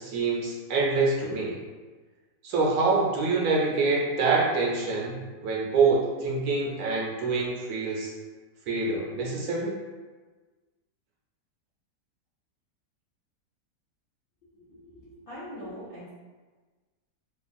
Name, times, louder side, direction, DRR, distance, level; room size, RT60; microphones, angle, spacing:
voice 1, 0.0-1.6 2.4-8.1 8.7-9.7, right 3 dB, 70° right, -3 dB, 1.0 m, -26 dB
voice 2, 14.7-16.1, equal, 65° left, -11 dB, 0.5 m, -42 dB
2.9 x 2.3 x 2.5 m, 1.3 s
omnidirectional pair, 1.7 m